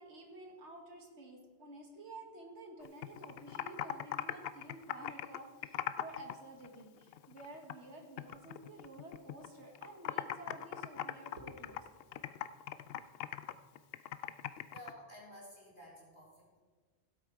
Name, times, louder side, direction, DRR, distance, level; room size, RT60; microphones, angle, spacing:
voice 1, 0.0-11.9, right 2 dB, 90° right, 2 dB, 2.1 m, -51 dB
Computer keyboard, 2.8-6.3 6.6-7.9 8.2-9.5 9.7-14.9, left 11 dB, 65° left, 0.7 m, -40 dB
voice 2, 14.7-16.6, equal, 45° left, -6 dB, 3.7 m, -53 dB
16.5 x 8.0 x 4.7 m, 1.5 s
omnidirectional pair, 1.1 m